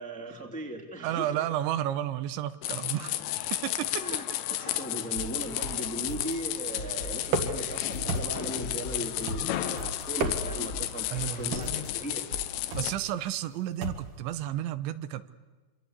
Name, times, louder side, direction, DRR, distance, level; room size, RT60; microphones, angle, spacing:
voice 1, 0.0-1.5 3.9-12.2, right 1 dB, ahead, 1 dB, 1.9 m, -38 dB
voice 2, 1.0-3.2 3.6-4.0 4.6-4.8 11.1-11.6 12.7-15.3, right 12 dB, 85° right, 13 dB, 3.3 m, -32 dB
sound 1, 2.6-12.9, left 14 dB, 75° left, 3.1 m, -33 dB
sound 2, 5.2-6.3 6.8-8.2 8.6-10.0 10.5-11.9 12.3-12.5, equal, 35° left, 2.5 m, -40 dB
sound 3, 7.3-7.7 8.1-8.6 9.3-9.7 10.1-10.7 11.5-11.8 12.7-13.0 13.8-14.1, right 3 dB, 55° right, 3.3 m, -32 dB
27.5 x 25.0 x 8.3 m, 1.2 s
omnidirectional pair, 5.1 m